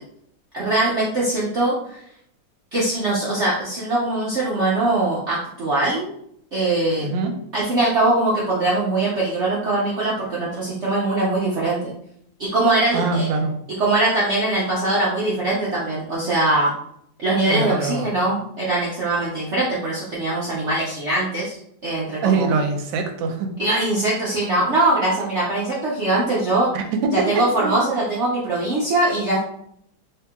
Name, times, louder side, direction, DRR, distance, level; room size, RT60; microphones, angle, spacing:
voice 1, 0.5-2.0 2.7-6.1 6.5-7.1 7.5-11.9 12.4-13.3 13.8-16.7 17.2-22.6 23.6-26.7 27.1-29.4, right 2 dB, 65° right, -6 dB, 0.7 m, -22 dB
voice 2, 7.0-7.3 12.9-13.5 17.4-18.1 22.2-23.5 26.7-27.9, right 4 dB, 85° right, 4 dB, 1.3 m, -23 dB
3.0 x 2.8 x 3.5 m, 0.71 s
omnidirectional pair, 2.0 m